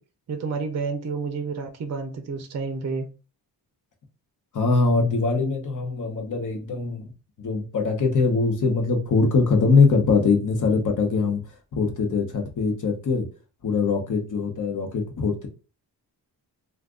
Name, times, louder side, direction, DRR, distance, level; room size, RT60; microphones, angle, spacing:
voice 1, 0.3-3.1, right 4 dB, 40° right, 0.6 m, -30 dB
voice 2, 4.5-7.1 7.4-13.3 13.6-15.5, left 4 dB, 45° left, 0.9 m, -22 dB
2.5 x 2.4 x 3.6 m
cardioid pair, 115°, 41 cm